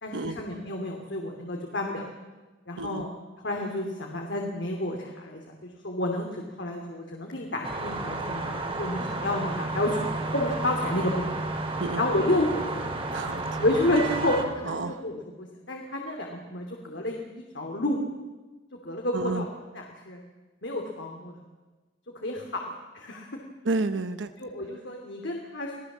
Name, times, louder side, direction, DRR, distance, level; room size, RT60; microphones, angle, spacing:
voice 1, 0.0-2.0 2.7-3.1 3.4-10.1 10.3-11.4 12.0-12.9 13.6-17.2 17.5-18.0 18.8-19.5 19.7-20.2 20.6-21.4 22.1-22.6 22.9-23.3 24.4-25.8, left 1 dB, 65° left, 1 dB, 2.8 m, -30 dB
sound 1, 7.6-14.4, right 2 dB, 30° right, 2.9 m, -32 dB
voice 2, 13.1-13.6 14.6-15.0 19.1-19.5 23.6-24.3, right 3 dB, 70° right, 10 dB, 0.9 m, -30 dB
26.5 x 17.5 x 7.4 m, 1.2 s
head